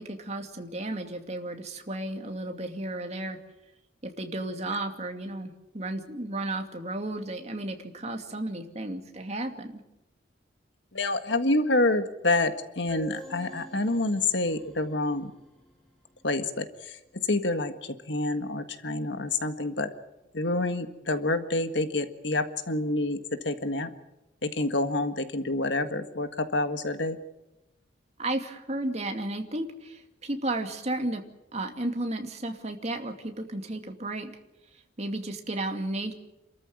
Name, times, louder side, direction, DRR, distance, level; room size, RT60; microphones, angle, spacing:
voice 1, 0.0-3.4 4.0-9.8 28.2-31.2 31.5-34.3 35.0-36.1, right 2 dB, 35° right, 5 dB, 2.5 m, -33 dB
voice 2, 10.9-15.3 16.2-17.0 17.3-19.9 20.3-23.2 23.4-23.9 24.4-27.2, left 2 dB, 65° left, 9 dB, 1.7 m, -27 dB
sound 1, 12.9-16.4, left 1 dB, ahead, 7.3 m, -47 dB
28.0 x 14.0 x 9.5 m, 0.94 s
head